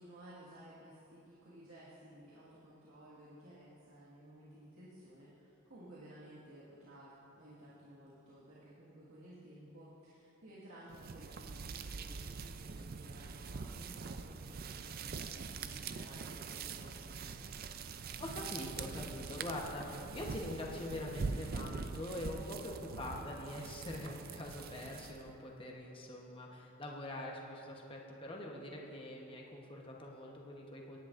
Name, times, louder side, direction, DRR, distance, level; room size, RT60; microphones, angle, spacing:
voice 1, 0.0-17.1, right 1 dB, 90° right, -9 dB, 1.8 m, -56 dB
sound 1, 10.9-25.4, right 4 dB, 45° right, 0.4 m, -44 dB
voice 2, 18.2-31.0, left 1 dB, 25° left, -1 dB, 1.0 m, -44 dB
17.5 x 10.5 x 2.6 m, 2.9 s
head